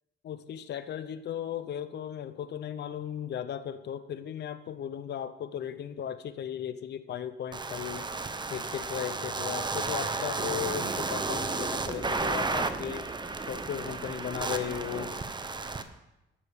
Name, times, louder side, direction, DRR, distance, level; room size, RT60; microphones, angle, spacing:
voice 1, 0.2-8.1 8.5-13.1 13.5-15.1, left 9 dB, 60° left, 12 dB, 0.7 m, -36 dB
sound 1, 7.5-15.8, right 3 dB, 20° right, 0.9 m, -33 dB
10.0 x 6.9 x 8.4 m, 0.96 s
cardioid pair, 90°, 20 cm